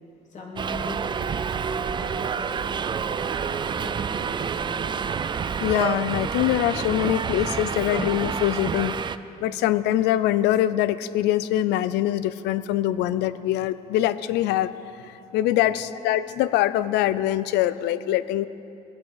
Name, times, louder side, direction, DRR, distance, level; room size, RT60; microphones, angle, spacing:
voice 1, 0.3-1.3 1.5-4.8 15.6-15.8, left 2 dB, 45° left, -2 dB, 2.9 m, -41 dB
Subway metro underground, 0.6-9.2, right 6 dB, 30° right, 0.4 m, -28 dB
voice 2, 5.6-9.0 9.4-14.7 15.1-18.5, left 13 dB, 85° left, 15 dB, 0.5 m, -23 dB
19.5 x 8.3 x 6.5 m, 2.9 s
cardioid pair, 110°, 17 cm